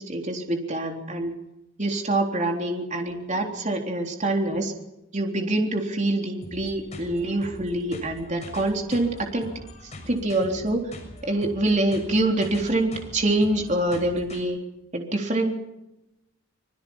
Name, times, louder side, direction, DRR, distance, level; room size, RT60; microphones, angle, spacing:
voice 1, 0.0-1.3 1.8-4.7 5.1-9.5 10.1-10.8 11.2-14.6 14.9-15.5, right 1 dB, 35° right, 2 dB, 3.7 m, -25 dB
sound 1, 6.4-14.4, left 1 dB, 30° left, 6.7 m, -43 dB
26.5 x 23.0 x 5.7 m, 0.90 s
head